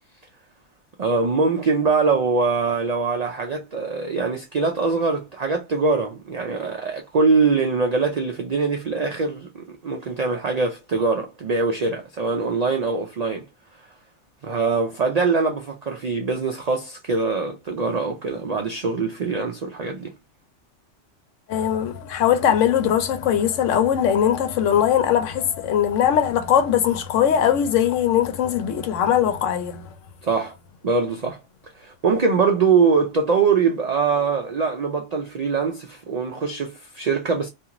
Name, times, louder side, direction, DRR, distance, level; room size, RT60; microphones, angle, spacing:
voice 1, 1.0-13.5 14.4-20.1 30.2-30.5 30.8-31.4 31.8-37.5, right 4 dB, 85° right, 0.3 m, -23 dB
voice 2, 21.5-29.9, left 9 dB, 85° left, 0.9 m, -20 dB
2.5 x 2.4 x 2.8 m
omnidirectional pair, 1.2 m